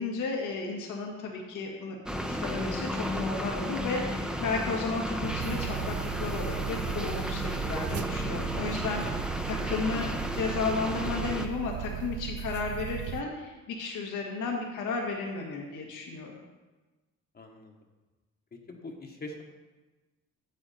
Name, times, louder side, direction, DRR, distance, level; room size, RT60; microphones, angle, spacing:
voice 1, 0.0-2.0 2.3-16.3, left 4 dB, 85° left, 0 dB, 1.9 m, -33 dB
sound 1, 2.1-11.5, equal, 5° right, 0.8 m, -33 dB
sound 2, 5.2-13.2, right 11 dB, 50° right, 0.5 m, -37 dB
voice 2, 9.9-10.2 17.3-17.7 18.5-19.4, left 2 dB, 30° left, 2 dB, 1.3 m, -43 dB
8.4 x 8.1 x 4.3 m, 1.2 s
cardioid pair, 90°, 30 cm